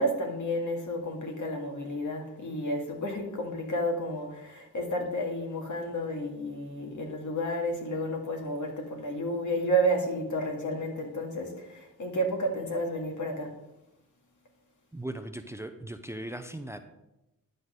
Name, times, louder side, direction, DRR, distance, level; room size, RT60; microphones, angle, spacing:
voice 1, 0.0-13.5, right 1 dB, 60° left, 1 dB, 2.1 m, -31 dB
voice 2, 14.9-16.8, right 1 dB, 10° right, 8 dB, 0.7 m, -38 dB
11.0 x 4.0 x 6.4 m, 0.92 s
cardioid pair, 65°, 34 cm